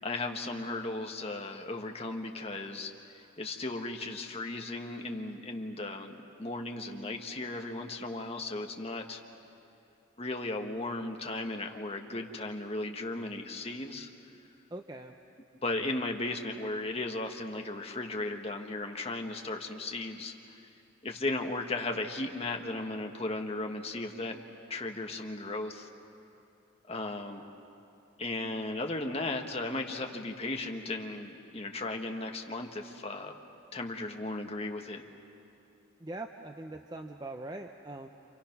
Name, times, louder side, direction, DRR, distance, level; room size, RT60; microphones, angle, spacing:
voice 1, 0.0-9.2 10.2-14.1 15.6-20.6 21.0-24.4 24.7-25.9 26.9-27.4 28.2-33.3 33.7-35.0, left 2 dB, 30° left, 3 dB, 1.4 m, -36 dB
voice 2, 14.7-15.1 36.0-38.1, right 2 dB, 20° right, 5 dB, 0.6 m, -42 dB
29.0 x 28.0 x 5.9 m, 2.8 s
head